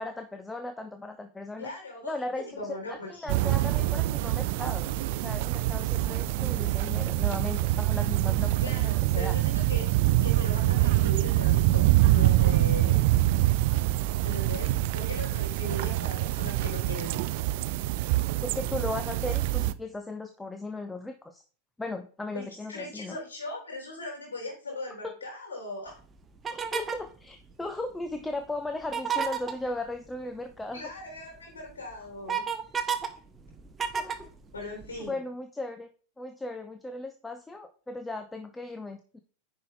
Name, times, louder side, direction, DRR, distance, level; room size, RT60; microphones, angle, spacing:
voice 1, 0.0-1.7 2.0-2.6 2.9-9.3 18.4-21.4 21.8-23.2 25.0-25.1 26.5-30.8 33.9-34.3 35.1-35.9 36.2-39.2, left 2 dB, 10° left, 7 dB, 0.7 m, -37 dB
voice 2, 1.6-3.3 8.6-9.9 10.2-13.0 14.2-17.2 22.3-26.0 30.7-32.5 34.5-35.2, left 2 dB, 70° left, 0 dB, 3.3 m, -39 dB
sound 1, 3.3-19.7, right 16 dB, 50° right, 0.4 m, -25 dB
sound 2, 26.4-27.1 28.8-29.6 31.2-31.3 31.7-33.1 33.4-35.0, right 7 dB, 20° right, 0.9 m, -30 dB
9.9 x 5.2 x 3.8 m, 0.39 s
figure-of-eight pair, 90°, 0 cm